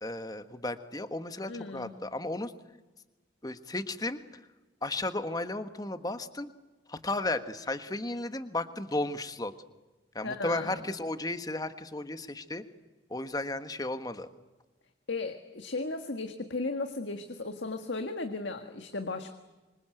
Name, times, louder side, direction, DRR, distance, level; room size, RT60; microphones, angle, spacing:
voice 1, 0.0-2.5 3.4-4.4 4.8-6.5 6.9-9.5 10.1-12.6 13.1-14.3, left 2 dB, 20° left, 10 dB, 1.4 m, -34 dB
voice 2, 1.5-1.9 10.2-10.8 15.1-19.3, left 3 dB, 85° left, 6 dB, 1.7 m, -35 dB
26.0 x 25.5 x 7.9 m, 1.2 s
head